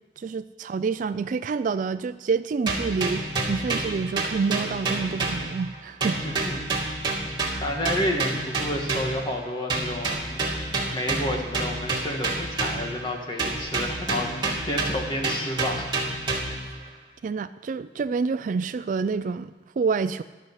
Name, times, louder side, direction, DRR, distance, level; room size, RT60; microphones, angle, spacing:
voice 1, 0.2-6.2 17.2-20.2, right 5 dB, 45° right, 13 dB, 0.3 m, -28 dB
sound 1, 2.7-5.7 6.0-9.3 9.7-13.0 13.4-16.7, right 2 dB, 25° right, 2.5 m, -29 dB
voice 2, 6.2-6.6 7.6-15.9 16.4-16.6, left 1 dB, 25° left, 2 dB, 1.5 m, -30 dB
12.5 x 6.4 x 8.0 m, 1.2 s
head